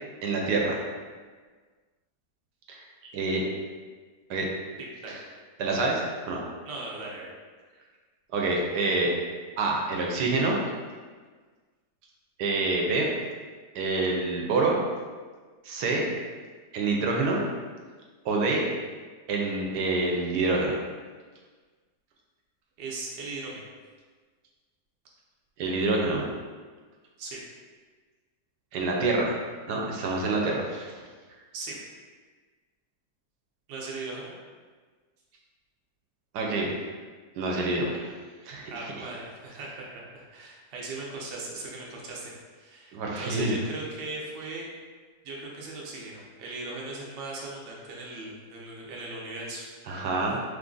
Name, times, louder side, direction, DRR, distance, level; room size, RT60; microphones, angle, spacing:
voice 1, 0.2-0.8 2.7-2.8 3.1-3.4 4.3-4.5 5.1-5.2 5.6-6.4 8.3-9.1 9.6-10.6 12.4-13.1 13.7-14.8 15.6-16.1 16.7-17.4 18.2-18.6 19.3-20.8 25.6-26.3 28.7-29.4 29.7-31.0 36.3-36.7 37.4-38.1 38.4-39.1 42.9-43.5 49.9-50.4, right 3 dB, 80° right, -1 dB, 1.2 m, -27 dB
voice 2, 6.7-7.3 22.8-23.6 27.2-27.4 31.5-31.8 33.7-34.3 38.7-44.7 45.2-50.0, right 2 dB, 60° right, -3 dB, 0.8 m, -38 dB
3.1 x 2.5 x 3.7 m, 1.5 s
omnidirectional pair, 1.8 m